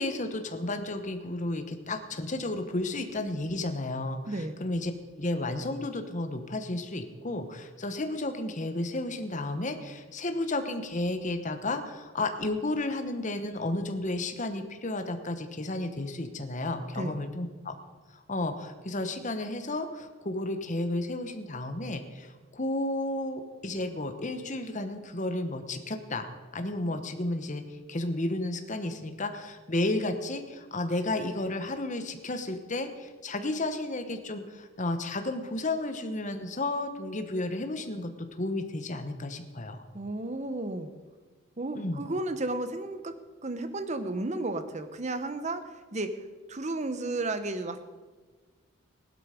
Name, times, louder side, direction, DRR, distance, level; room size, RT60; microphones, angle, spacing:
voice 1, 0.0-4.9 5.2-17.7 18.1-38.1 38.4-39.8 41.7-42.0, left 2 dB, 35° left, 7 dB, 1.1 m, -32 dB
voice 2, 4.3-4.6 16.9-17.2 39.9-40.9 41.6-46.2 46.5-47.8, right 2 dB, 35° right, 10 dB, 0.9 m, -33 dB
16.5 x 12.0 x 5.1 m, 1.4 s
head